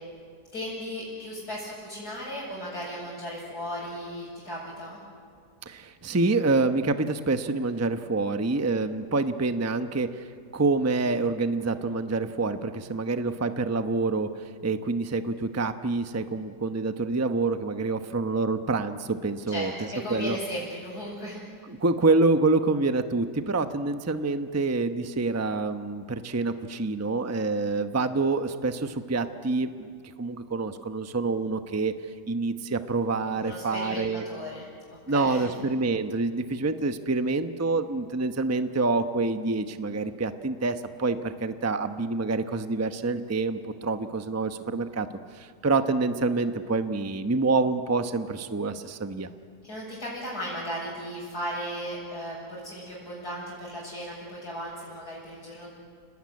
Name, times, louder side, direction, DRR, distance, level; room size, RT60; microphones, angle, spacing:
voice 1, 0.5-5.0 19.5-21.4 33.4-35.4 49.6-55.7, equal, 70° left, -8 dB, 7.4 m, -36 dB
voice 2, 5.7-10.3 10.5-14.3 14.6-19.7 20.1-20.4 21.7-29.9 30.2-31.9 32.3-34.2 35.1-45.1 45.3-49.3, right 3 dB, 15° right, 8 dB, 0.7 m, -27 dB
29.5 x 19.5 x 9.6 m, 2.2 s
omnidirectional pair, 1.7 m